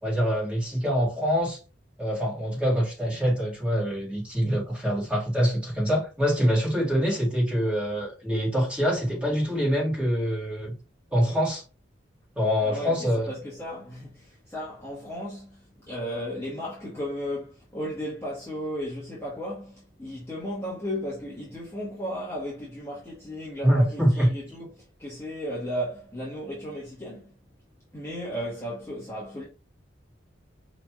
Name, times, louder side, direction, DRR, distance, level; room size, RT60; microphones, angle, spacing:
voice 1, 0.0-1.6 2.0-10.7 11.1-11.6 12.4-13.3 23.6-24.3, equal, 5° right, 1.8 m, -25 dB
voice 2, 12.6-27.4 27.9-29.4, equal, 15° left, 1.1 m, -35 dB
4.9 x 3.1 x 2.4 m
head